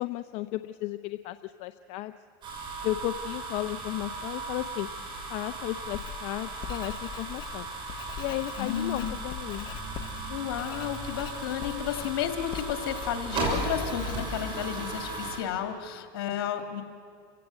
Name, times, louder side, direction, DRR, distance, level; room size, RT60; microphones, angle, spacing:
voice 1, 0.0-2.1 2.8-4.9 5.3-7.7 8.2-9.7, left 16 dB, 60° left, 11 dB, 0.6 m, -34 dB
sound 1, 2.4-15.4, right 3 dB, 40° right, 6.3 m, -36 dB
Writing, 5.8-15.2, left 9 dB, 40° left, 1.3 m, -43 dB
voice 2, 8.6-9.2 10.3-16.8, left 9 dB, 80° left, 6 dB, 2.3 m, -32 dB
29.0 x 16.0 x 8.0 m, 2.3 s
supercardioid pair, 110°, 12 cm